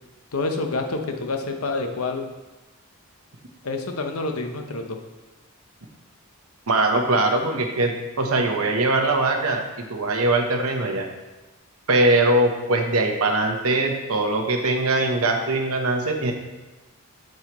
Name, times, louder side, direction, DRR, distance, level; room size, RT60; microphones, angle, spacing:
voice 1, 0.3-2.3 3.6-5.0, left 3 dB, 80° left, 5 dB, 0.8 m, -27 dB
voice 2, 6.7-11.1 11.9-16.3, right 2 dB, 75° right, 3 dB, 1.0 m, -21 dB
7.7 x 6.5 x 3.0 m, 1.1 s
head